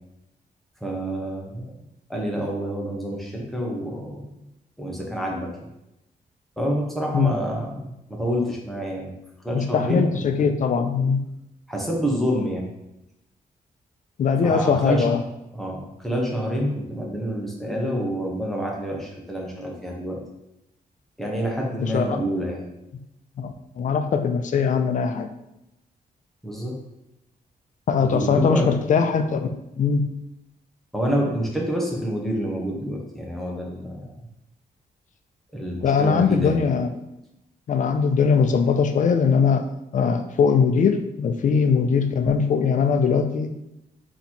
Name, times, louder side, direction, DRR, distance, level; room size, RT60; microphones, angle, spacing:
voice 1, 0.8-1.7 2.1-4.3 4.8-5.7 6.6-9.1 9.4-10.5 11.7-12.7 14.4-15.1 15.5-20.2 21.2-22.6 26.4-26.8 28.0-28.8 30.9-34.3 35.5-36.6, equal, ahead, -2 dB, 0.9 m, -27 dB
voice 2, 9.5-11.2 14.2-15.2 21.8-22.2 23.4-25.3 27.9-30.1 35.8-36.9 37.7-39.6 39.9-43.5, left 6 dB, 55° left, 7 dB, 0.4 m, -21 dB
4.0 x 2.9 x 4.3 m, 0.87 s
wide cardioid pair, 135°, 16 cm